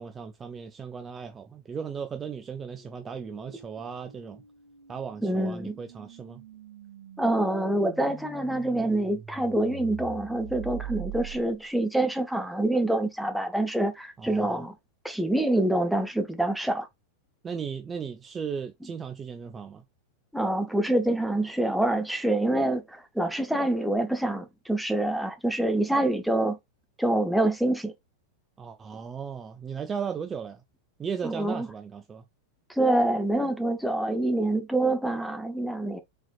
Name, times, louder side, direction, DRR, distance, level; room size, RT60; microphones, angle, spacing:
voice 1, 0.0-4.4 4.9-6.4 14.2-14.7 17.4-19.8 28.6-30.6 31.0-32.2, right 6 dB, 20° right, 0.5 m, -36 dB
sound 1, 1.8-11.8, right 7 dB, 35° right, 2.9 m, -44 dB
voice 2, 5.2-5.8 7.2-14.8 15.0-16.9 20.3-26.6 27.0-27.9 31.2-31.7 32.7-36.0, right 1 dB, ahead, 0.8 m, -26 dB
4.2 x 4.0 x 2.4 m
figure-of-eight pair, 90°, 0 cm